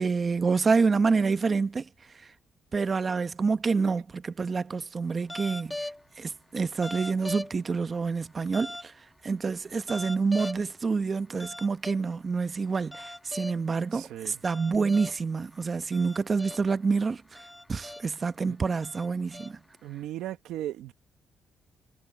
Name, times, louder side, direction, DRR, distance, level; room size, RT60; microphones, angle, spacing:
voice 1, 0.0-1.9 2.7-5.8 6.2-8.9 9.2-17.2 17.7-19.6, right 4 dB, 35° right, 0.9 m, -27 dB
sound 1, 5.3-6.0 6.7-7.8 8.5-8.9 9.7-10.8 11.4-12.0 12.7-13.8 14.4-15.2 15.7-16.8 17.3-18.2 18.7-19.8, left 1 dB, 10° left, 1.6 m, -39 dB
voice 2, 13.9-14.4 18.5-18.6 19.8-20.9, right 13 dB, 85° right, 1.4 m, -37 dB
cardioid pair, 90°, 0 cm